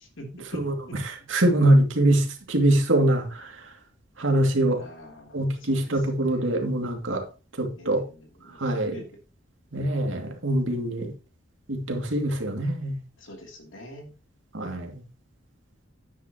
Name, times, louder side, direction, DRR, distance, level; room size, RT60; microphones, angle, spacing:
voice 1, 0.4-3.6 4.2-4.8 5.3-7.2 7.6-8.0 8.6-9.0 9.7-11.1 11.7-13.0 14.5-15.0, right 1 dB, 85° right, 2.4 m, -24 dB
voice 2, 4.7-5.8 6.3-6.6 7.8-8.0 8.4-8.6 8.9-9.0 13.2-14.1, equal, 85° left, 2.9 m, -44 dB
10.0 x 9.7 x 2.9 m
head